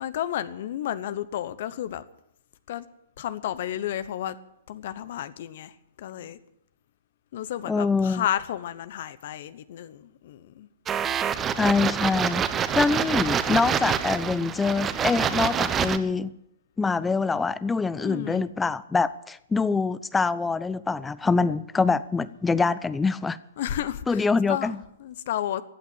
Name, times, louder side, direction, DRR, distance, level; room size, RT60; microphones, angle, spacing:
voice 1, 0.0-2.0 2.7-2.9 3.2-4.4 4.7-6.4 7.3-10.7 18.0-18.5 23.6-25.6, left 11 dB, 60° left, 0.9 m, -32 dB
voice 2, 7.7-8.2 11.6-16.3 16.8-23.4 24.1-24.8, left 4 dB, 10° left, 0.6 m, -25 dB
sound 1, 10.9-16.0, right 8 dB, 20° right, 0.9 m, -26 dB
15.0 x 8.3 x 9.9 m
hypercardioid pair, 130°, 0 cm